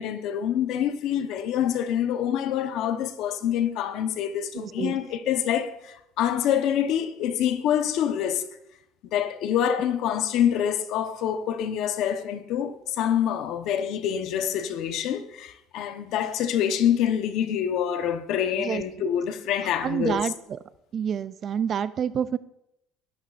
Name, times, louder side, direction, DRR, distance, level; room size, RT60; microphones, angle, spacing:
voice 1, 0.0-8.4 9.1-20.2, left 9 dB, 55° left, 0.9 m, -26 dB
voice 2, 4.5-5.0 18.6-19.2 19.8-20.6 20.9-22.4, right 8 dB, 30° right, 0.4 m, -28 dB
21.0 x 12.5 x 2.5 m
cardioid pair, 170°, 0 cm